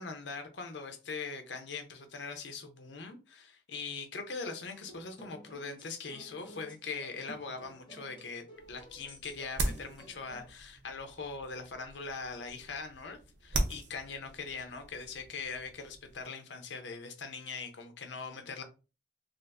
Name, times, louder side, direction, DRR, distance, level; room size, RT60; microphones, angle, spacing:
voice 1, 0.0-18.6, left 4 dB, 90° left, 0.7 m, -41 dB
sound 1, 4.7-10.5, right 1 dB, 30° left, 1.1 m, -53 dB
sound 2, 8.5-16.2, right 2 dB, 80° right, 0.7 m, -40 dB
2.7 x 2.5 x 3.4 m
head